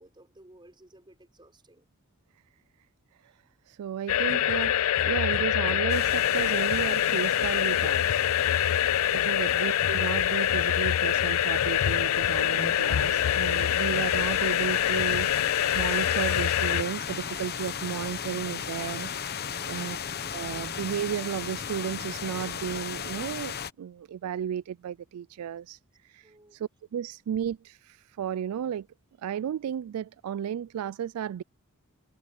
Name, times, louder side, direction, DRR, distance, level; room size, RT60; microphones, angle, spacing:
voice 1, 0.0-1.8 3.2-3.4 26.2-26.6, right 1 dB, 20° right, 4.7 m, -57 dB
voice 2, 3.7-4.7 5.1-8.3 9.1-19.1 19.7-20.0 20.3-25.8 26.1-26.3 26.6-28.9 29.2-31.4, right 9 dB, 80° right, 0.3 m, -33 dB
sound 1, 4.1-16.8, left 11 dB, 70° left, 0.4 m, -25 dB
sound 2, 5.9-23.7, left 7 dB, 45° left, 0.9 m, -37 dB
Sliding door / Slam, 10.5-15.2, right 1 dB, 40° right, 4.1 m, -53 dB
head